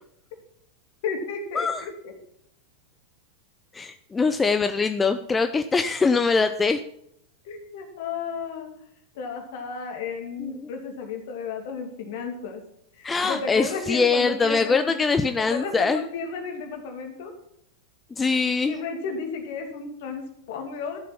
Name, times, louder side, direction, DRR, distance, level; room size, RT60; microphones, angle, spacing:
voice 1, 1.0-2.2 7.4-8.7 9.1-12.6 13.0-15.0 15.4-17.3 18.6-21.0, left 5 dB, 50° left, 4 dB, 2.5 m, -33 dB
voice 2, 3.7-6.8 10.4-10.7 13.0-16.0 18.2-18.8, left 4 dB, 15° left, 9 dB, 0.6 m, -23 dB
13.0 x 7.5 x 5.9 m, 0.74 s
figure-of-eight pair, 90°, 0 cm